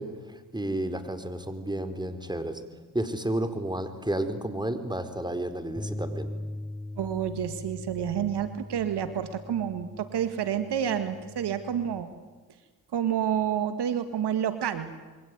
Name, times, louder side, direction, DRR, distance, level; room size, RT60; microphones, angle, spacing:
voice 1, 0.0-2.6 2.9-6.3, right 1 dB, 10° right, 9 dB, 4.1 m, -31 dB
Bass guitar, 5.8-12.0, left 1 dB, 10° left, 4.0 m, -40 dB
voice 2, 7.0-12.1 12.9-14.9, right 9 dB, 80° right, 10 dB, 2.0 m, -29 dB
27.5 x 23.0 x 9.5 m, 1.3 s
supercardioid pair, 50°, 40 cm